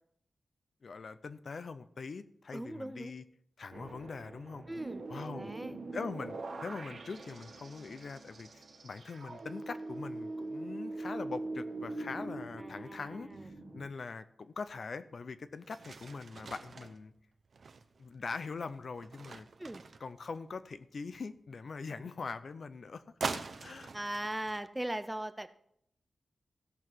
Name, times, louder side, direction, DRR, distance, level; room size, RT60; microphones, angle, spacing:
voice 1, 0.8-3.2 3.6-4.7 5.1-5.5 5.9-17.1 18.0-19.5 20.0-23.0 23.3-23.9, left 4 dB, 60° left, 12 dB, 0.5 m, -42 dB
voice 2, 2.5-3.1 4.7-5.1 5.3-5.8 12.6-13.5 19.6-19.8 23.9-25.5, right 1 dB, 10° right, 12 dB, 0.5 m, -39 dB
sound 1, 3.7-13.9, right 2 dB, 80° right, 1.8 m, -43 dB
sound 2, 15.2-15.3 15.6-20.6 23.2-24.6, right 4 dB, 60° right, 0.7 m, -43 dB
16.5 x 6.0 x 4.6 m, 0.71 s
wide cardioid pair, 135°, 0 cm